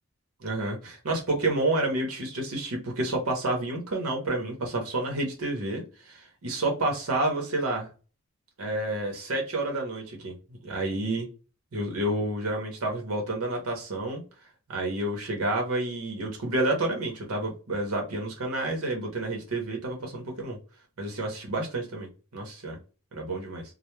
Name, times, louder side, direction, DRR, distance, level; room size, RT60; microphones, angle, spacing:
voice 1, 0.4-7.9 8.6-10.3 10.6-11.3 11.7-14.2 14.7-20.6 21.0-22.8 23.1-23.6, right 2 dB, 80° right, 1 dB, 0.8 m, -29 dB
2.1 x 2.1 x 3.0 m, 0.34 s
head